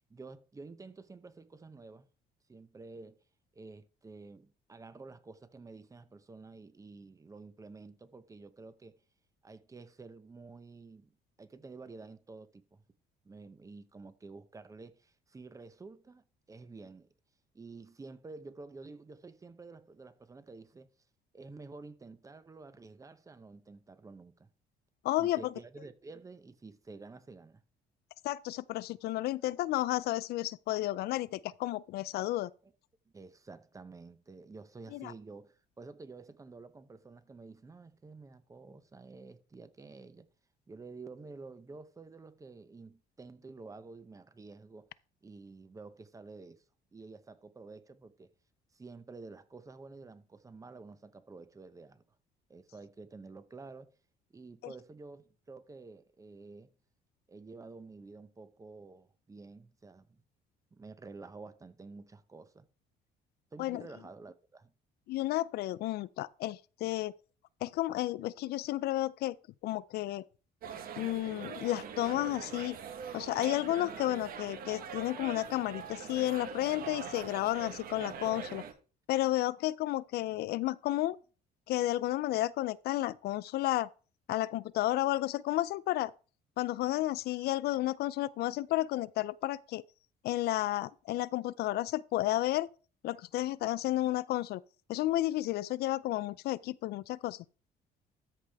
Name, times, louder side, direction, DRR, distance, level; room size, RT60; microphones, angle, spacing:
voice 1, 0.0-2.1 2.5-3.2 3.5-9.0 9.4-11.1 11.4-12.8 13.2-17.1 17.5-20.9 21.3-24.5 25.2-27.6 32.6-32.7 33.1-40.3 40.7-44.9 45.2-46.6 46.9-48.3 48.7-52.0 52.5-54.0 54.3-56.7 57.3-60.2 60.7-62.7 63.5-64.7, right 3 dB, 20° right, 0.7 m, -50 dB
voice 2, 25.0-25.4 28.2-32.5 34.9-35.1 54.6-54.7 63.6-63.8 65.1-67.1 67.6-69.4 69.6-70.2 71.0-72.8 73.1-78.6 79.1-81.2 81.7-83.9 84.3-86.1 86.6-89.8 90.2-92.7 93.0-94.6 94.9-97.4, left 16 dB, 70° left, 0.4 m, -32 dB
sound 1, 70.6-78.7, right 7 dB, 60° right, 1.3 m, -43 dB
13.5 x 4.9 x 3.4 m
cardioid pair, 110°, 17 cm